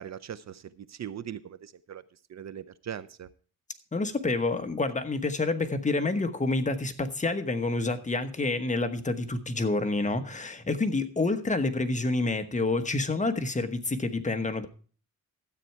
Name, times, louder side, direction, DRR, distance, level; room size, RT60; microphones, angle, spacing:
voice 1, 0.0-3.3, right 9 dB, 55° right, 14 dB, 0.6 m, -40 dB
voice 2, 3.9-14.7, left 2 dB, 20° left, 7 dB, 1.2 m, -28 dB
13.0 x 8.5 x 4.6 m, 0.40 s
cardioid pair, 115°, 33 cm